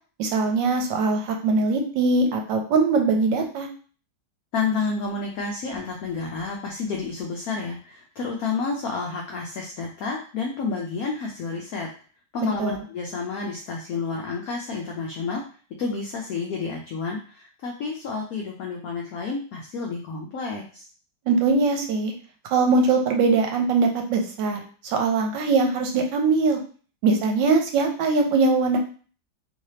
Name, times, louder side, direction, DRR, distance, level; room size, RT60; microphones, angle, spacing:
voice 1, 0.2-3.7 12.6-12.8 21.3-22.1 22.5-26.6 27.0-28.8, right 3 dB, 75° right, 3 dB, 1.4 m, -21 dB
voice 2, 4.5-11.9 12.3-15.4 15.8-20.9, left 4 dB, 70° left, 0 dB, 0.9 m, -30 dB
3.2 x 3.2 x 2.8 m, 0.40 s
omnidirectional pair, 2.0 m